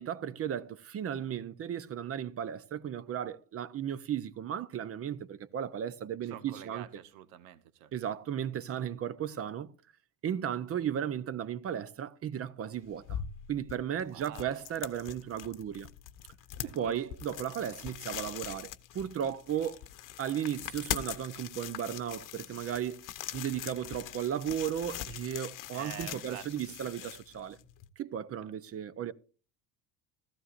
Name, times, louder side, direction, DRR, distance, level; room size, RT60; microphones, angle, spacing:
voice 1, 0.0-6.8 7.9-9.7 10.2-13.2 13.5-15.9 16.6-19.8 20.2-27.6 28.0-29.1, right 9 dB, 35° right, 0.8 m, -35 dB
voice 2, 6.2-7.9 14.1-14.5 16.6-17.1 25.7-27.2 28.4-28.5, right 11 dB, 85° right, 1.2 m, -48 dB
sound 1, 12.7-27.9, left 12 dB, 55° left, 1.0 m, -42 dB
15.5 x 14.0 x 2.5 m
cardioid pair, 115°, 38 cm